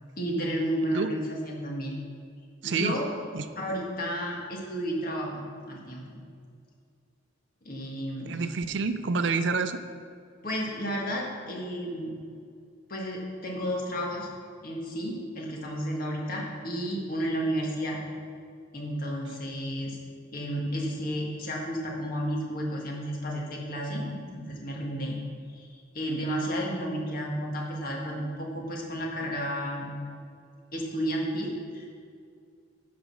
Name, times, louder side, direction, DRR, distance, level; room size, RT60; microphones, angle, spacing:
voice 1, 0.2-2.0 2.6-3.0 3.6-6.2 7.6-8.3 10.4-12.1 12.9-14.3 14.6-18.0 18.7-20.0 20.3-25.2 25.5-29.9 30.7-31.9, equal, 45° left, -1 dB, 1.8 m, -32 dB
voice 2, 2.6-3.0 3.3-3.4 8.3-9.8, right 4 dB, 65° right, 10 dB, 0.5 m, -28 dB
10.5 x 5.1 x 6.3 m, 2.3 s
head